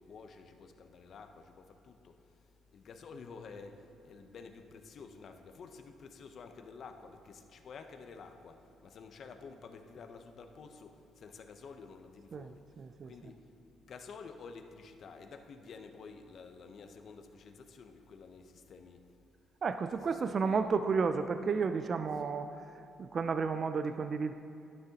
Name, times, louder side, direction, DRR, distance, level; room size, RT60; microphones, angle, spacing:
voice 1, 0.0-12.8 13.0-13.5 13.8-19.0 20.3-21.1, left 5 dB, 60° left, 6 dB, 0.7 m, -51 dB
voice 2, 12.8-13.1 19.6-22.6 23.0-24.3, right 5 dB, 50° right, 9 dB, 0.3 m, -32 dB
11.5 x 9.5 x 2.9 m, 2.5 s
cardioid pair, 90°, 0 cm